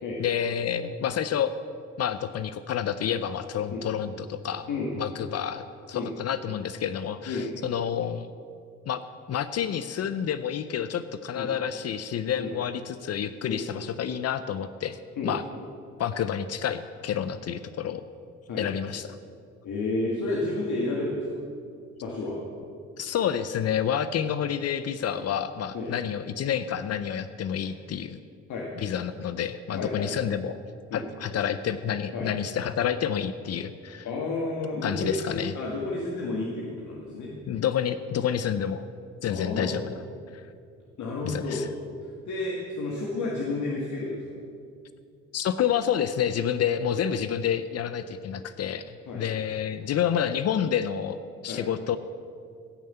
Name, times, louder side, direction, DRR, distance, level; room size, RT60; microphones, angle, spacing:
voice 1, 0.2-1.5 2.0-4.7 5.0-8.3 8.9-9.0 9.3-15.0 15.2-15.4 16.0-18.0 18.6-19.2 23.0-28.2 28.8-30.6 30.9-34.1 34.8-35.5 37.5-38.9 39.2-39.9 40.3-40.4 41.2-41.7 45.3-48.8 49.1-52.0, left 9 dB, 55° left, 12 dB, 0.6 m, -29 dB
voice 2, 19.6-21.4 22.0-22.4 25.7-25.9 28.5-28.7 29.7-30.1 30.9-31.0 32.1-32.3 34.0-37.3 39.3-39.7 41.0-41.7 42.0-44.2 49.1-49.4 51.5-51.6, left 2 dB, 75° left, -3 dB, 1.9 m, -31 dB
16.5 x 5.5 x 7.9 m, 2.3 s
cardioid pair, 90°, 30 cm